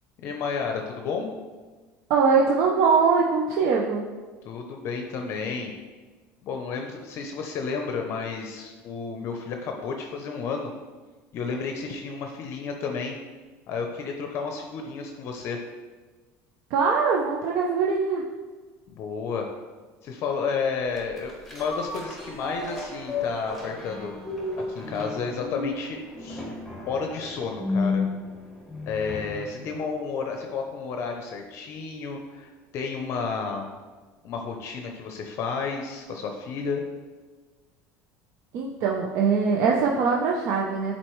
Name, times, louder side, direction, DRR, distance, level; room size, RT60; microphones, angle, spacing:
voice 1, 0.2-1.3 4.4-5.7 6.4-10.7 11.3-13.2 13.7-15.6 18.9-19.5 20.0-24.1 24.7-26.5 26.9-28.0 28.9-33.7 34.2-36.8, left 5 dB, 45° left, 3 dB, 0.6 m, -31 dB
voice 2, 2.1-4.1 16.7-18.2 38.5-40.9, right 5 dB, 60° right, -1 dB, 0.6 m, -22 dB
sound 1, 20.9-29.5 29.9-30.0, left 3 dB, ahead, 1.3 m, -33 dB
7.5 x 4.2 x 3.1 m, 1.4 s
cardioid pair, 145°, 6 cm